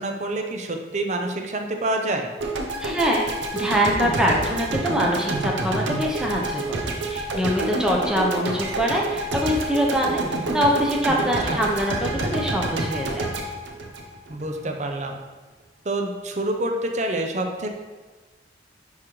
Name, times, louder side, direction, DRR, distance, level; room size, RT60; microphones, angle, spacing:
voice 1, 0.0-2.3 11.4-11.6 14.3-15.2 15.8-17.7, right 1 dB, 40° right, 3 dB, 0.6 m, -27 dB
sound 1, 2.4-14.6, right 2 dB, 85° right, 0.8 m, -28 dB
voice 2, 2.8-13.3, equal, 5° right, -2 dB, 0.8 m, -24 dB
10.5 x 3.8 x 3.2 m, 1.3 s
head